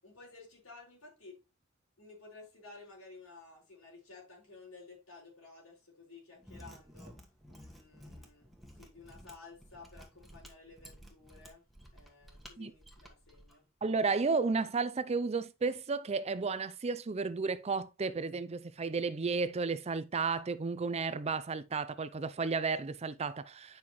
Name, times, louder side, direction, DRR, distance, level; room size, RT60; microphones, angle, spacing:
voice 1, 0.0-1.4 2.0-7.2 7.5-11.6 11.9-13.7, left 3 dB, 75° left, 5.2 m, -54 dB
Mechanisms, 6.4-13.5, equal, ahead, 1.3 m, -54 dB
voice 2, 13.8-23.8, right 4 dB, 30° right, 0.5 m, -33 dB
9.5 x 5.5 x 3.1 m
head